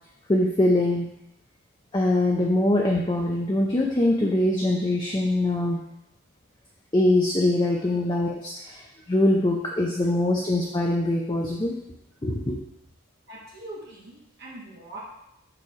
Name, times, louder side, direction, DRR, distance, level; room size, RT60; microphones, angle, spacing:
voice 1, 0.3-1.1 1.9-5.8 6.9-11.8 12.2-12.6, left 1 dB, 20° left, -1 dB, 0.5 m, -23 dB
voice 2, 13.3-15.0, right 1 dB, 50° right, -6 dB, 1.3 m, -42 dB
6.7 x 3.3 x 4.7 m, 0.81 s
head